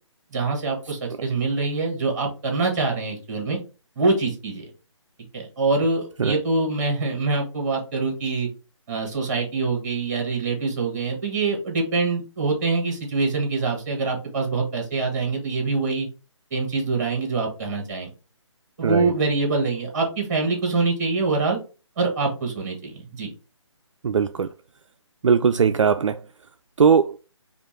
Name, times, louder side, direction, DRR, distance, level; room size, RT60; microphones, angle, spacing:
voice 1, 0.3-3.6 3.9-4.6 5.3-8.5 8.9-16.1 16.5-18.1 18.8-21.6 22.0-23.3, right 3 dB, 35° right, 1.7 m, -24 dB
voice 2, 24.0-24.5 25.2-26.2 26.8-27.1, right 6 dB, 75° right, 0.4 m, -19 dB
5.1 x 2.5 x 3.1 m
figure-of-eight pair, 150°, 16 cm